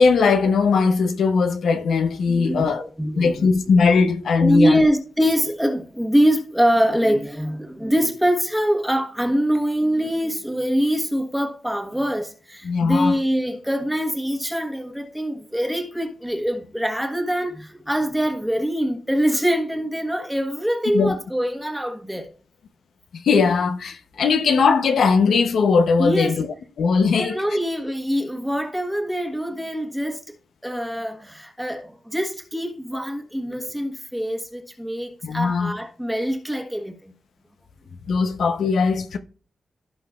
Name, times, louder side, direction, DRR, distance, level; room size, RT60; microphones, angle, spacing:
voice 1, 0.0-2.9 3.2-4.8 12.6-13.2 20.9-21.2 23.1-27.4 35.2-35.8 38.1-39.2, left 5 dB, 85° left, 0.8 m, -19 dB
voice 2, 2.2-2.7 3.0-3.5 4.4-22.3 26.0-26.3 27.2-30.4 30.6-37.1, equal, 5° right, 1.2 m, -24 dB
16.0 x 5.7 x 2.4 m
wide cardioid pair, 175°, 0 cm